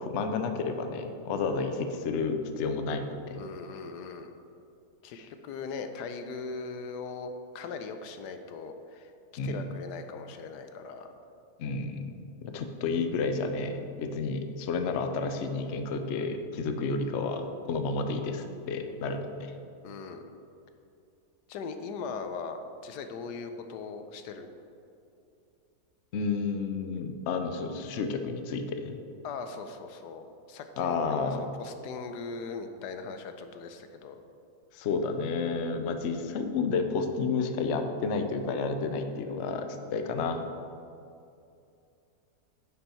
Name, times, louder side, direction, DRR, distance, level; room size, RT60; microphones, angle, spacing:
voice 1, 0.0-3.4 5.1-5.3 9.4-9.7 11.6-12.1 12.4-19.5 26.1-29.0 30.8-31.5 34.7-40.4, left 4 dB, 60° left, 6 dB, 0.7 m, -31 dB
voice 2, 3.3-4.3 5.0-9.1 9.4-11.1 19.1-19.2 19.8-20.2 21.5-24.5 29.2-34.2, left 4 dB, 85° left, 7 dB, 1.2 m, -40 dB
9.9 x 5.4 x 4.4 m, 2.6 s
omnidirectional pair, 1.7 m